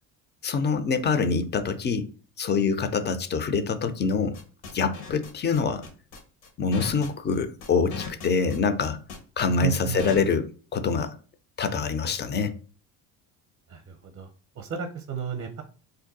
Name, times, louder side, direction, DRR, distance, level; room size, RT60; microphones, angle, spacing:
voice 1, 0.4-2.1 2.4-4.4 4.7-5.8 6.6-9.0 9.4-11.2 11.6-12.5, left 5 dB, 30° left, 0.4 m, -25 dB
sound 1, 4.3-10.3, left 5 dB, 80° left, 1.0 m, -38 dB
voice 2, 9.6-10.0 13.7-14.3 14.6-15.6, right 7 dB, 40° right, 0.6 m, -32 dB
2.6 x 2.2 x 3.9 m
supercardioid pair, 80°, 40 cm